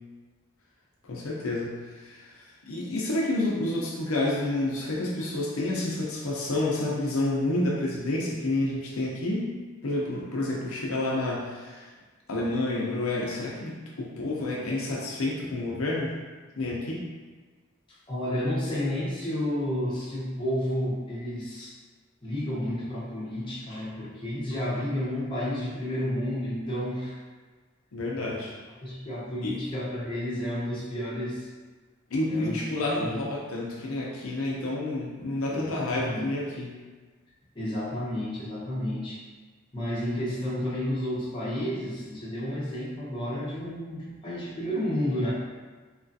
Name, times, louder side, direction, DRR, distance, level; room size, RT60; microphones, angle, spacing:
voice 1, 1.0-9.5 9.8-11.9 12.3-16.1 16.6-17.0 27.9-28.5 29.4-29.6 32.1-36.7, left 2 dB, 90° left, -4 dB, 0.6 m, -29 dB
voice 2, 18.1-21.7 22.2-27.2 28.8-31.5 32.3-33.2 35.5-36.3 37.5-39.2 39.7-45.3, left 1 dB, 25° left, -9 dB, 0.8 m, -31 dB
2.9 x 2.4 x 2.6 m, 1.4 s
head